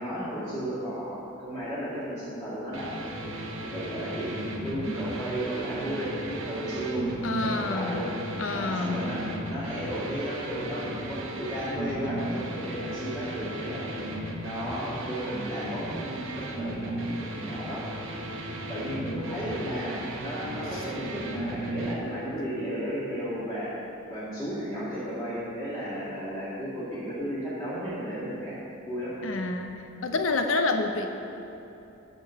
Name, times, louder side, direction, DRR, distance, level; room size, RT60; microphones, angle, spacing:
voice 1, 0.0-2.9 3.2-3.3 3.7-7.1 7.4-17.8 18.7-23.8 24.0-28.6 28.9-29.2, equal, 15° left, -12 dB, 1.9 m, -34 dB
sound 1, 2.7-21.9, right 1 dB, 75° right, 1.0 m, -36 dB
voice 2, 7.2-8.0 8.4-9.1 29.2-31.1, left 3 dB, 75° left, 6 dB, 0.7 m, -28 dB
9.1 x 5.3 x 6.9 m, 2.9 s
head